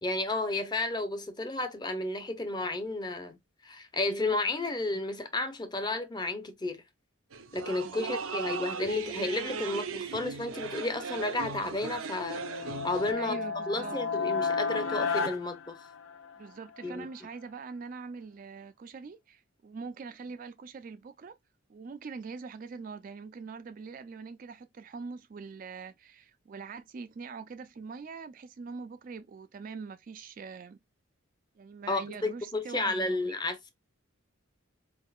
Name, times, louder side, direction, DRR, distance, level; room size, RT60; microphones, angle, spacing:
voice 1, 0.0-3.4 3.6-6.8 7.5-13.4 13.7-15.8 16.8-17.1 31.9-33.7, left 2 dB, 20° left, 0.6 m, -32 dB
sound 1, 7.3-13.1, right 5 dB, 85° right, 0.6 m, -38 dB
voice 2, 7.8-8.6 13.2-14.0 16.4-21.4 21.7-30.8 31.6-33.4, right 5 dB, 40° right, 0.3 m, -43 dB
sound 2, 12.1-16.5, left 5 dB, 80° left, 0.7 m, -32 dB
4.3 x 3.6 x 2.3 m
head